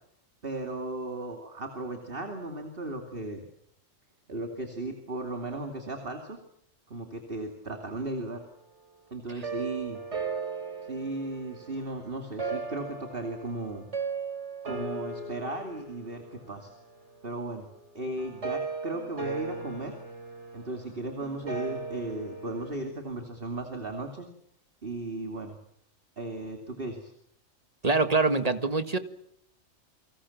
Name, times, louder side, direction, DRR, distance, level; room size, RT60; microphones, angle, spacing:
voice 1, 0.4-3.4 4.3-6.4 6.9-8.4 9.1-10.0 10.8-13.9 14.6-16.7 17.2-17.7 17.9-19.9 20.5-24.3 24.8-25.6 26.2-27.1, right 2 dB, 45° right, 4 dB, 3.0 m, -36 dB
sound 1, 9.4-22.9, right 4 dB, 60° right, 4.1 m, -38 dB
voice 2, 27.8-29.0, right 3 dB, 30° right, 10 dB, 1.9 m, -24 dB
29.5 x 25.0 x 7.3 m, 0.71 s
omnidirectional pair, 1.3 m